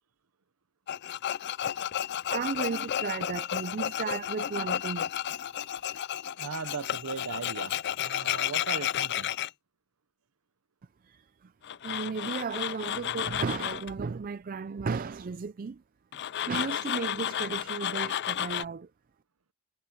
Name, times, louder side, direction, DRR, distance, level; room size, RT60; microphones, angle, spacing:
Tools, 0.9-9.5 11.6-13.9 16.1-18.6, left 10 dB, 50° left, 0.4 m, -32 dB
voice 1, 2.3-5.1 11.0-11.5 11.8-15.8 16.3-18.9, right 5 dB, 40° right, 0.4 m, -34 dB
voice 2, 6.4-9.3, right 5 dB, 85° right, 0.9 m, -38 dB
head